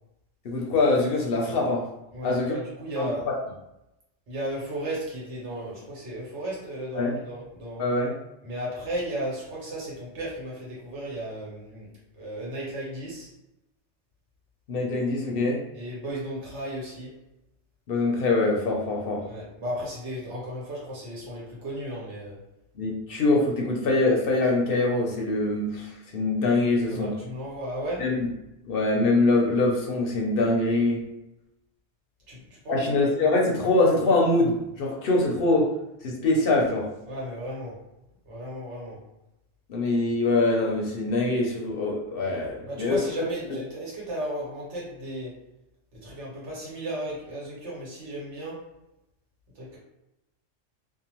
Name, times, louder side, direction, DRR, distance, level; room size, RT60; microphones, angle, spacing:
voice 1, 0.4-1.9 2.2-2.5 3.0-3.3 6.9-7.2 7.8-8.1 14.7-15.6 17.9-19.2 22.8-27.1 28.0-28.3 28.6-31.0 32.7-35.7 36.0-36.9 39.7-43.0 43.5-43.6, left 2 dB, 60° left, -1 dB, 0.7 m, -24 dB
voice 2, 2.1-3.3 4.3-7.8 8.4-11.9 12.1-13.3 15.7-17.2 19.2-22.4 26.9-28.1 32.3-33.0 37.1-37.8 38.3-39.0 42.6-45.4 45.9-48.7 49.5-49.8, right 1 dB, 80° right, -5 dB, 1.3 m, -34 dB
2.7 x 2.1 x 2.9 m, 0.90 s
omnidirectional pair, 1.2 m